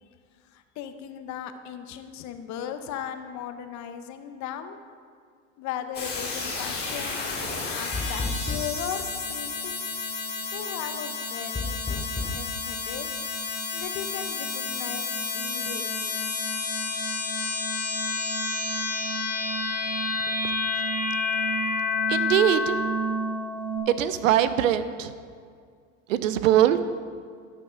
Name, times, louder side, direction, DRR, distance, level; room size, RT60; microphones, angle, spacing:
voice 1, 0.5-4.8 5.6-9.9 10.5-13.1 13.4-16.2, left 9 dB, 45° left, 8 dB, 0.9 m, -37 dB
sound 1, 5.9-23.8, left 3 dB, 25° left, 2.6 m, -30 dB
sound 2, 7.9-8.9 11.5-12.5, left 3 dB, 5° left, 0.4 m, -31 dB
voice 2, 22.1-22.8 23.9-25.1 26.1-26.8, right 11 dB, 90° right, 13 dB, 0.6 m, -22 dB
10.5 x 6.0 x 5.1 m, 2.1 s
hypercardioid pair, 100°, 38 cm